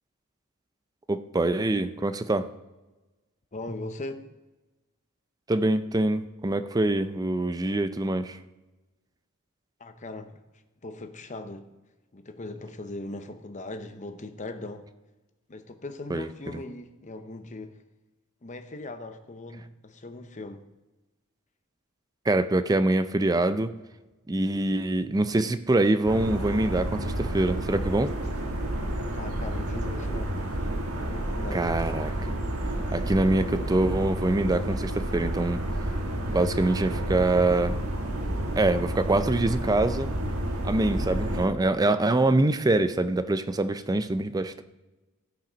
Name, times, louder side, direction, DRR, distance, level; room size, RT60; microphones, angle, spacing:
voice 1, 1.1-2.5 5.5-8.4 16.1-16.3 22.3-23.7 24.3-28.1 31.5-32.3 32.9-35.6 36.3-37.8 38.6-40.1 40.6-44.6, right 2 dB, 15° right, 0.4 m, -24 dB
voice 2, 3.5-4.2 9.8-10.3 10.8-11.7 12.1-14.9 15.5-17.8 18.4-20.6 28.8-30.7 30.9-31.8 36.9-37.1, left 2 dB, 35° left, 0.8 m, -39 dB
sound 1, 26.1-41.5, right 1 dB, 85° right, 1.4 m, -30 dB
15.0 x 5.9 x 5.1 m
head